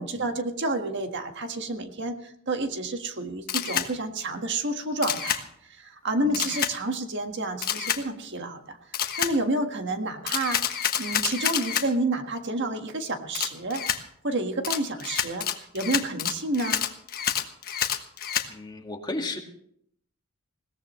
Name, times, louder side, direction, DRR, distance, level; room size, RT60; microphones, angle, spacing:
voice 1, 0.0-8.8 9.2-13.8 14.2-15.5 15.7-16.8, right 2 dB, 55° right, 5 dB, 1.6 m, -29 dB
Camera, 3.5-3.9 5.0-5.4 6.3-6.7 7.6-8.0 8.9-9.3 10.3-11.9 13.3-14.0 14.6-18.5, left 9 dB, 45° left, 1.3 m, -28 dB
voice 2, 18.5-19.4, left 2 dB, 20° left, 2 dB, 1.9 m, -34 dB
21.0 x 18.0 x 3.2 m, 0.69 s
head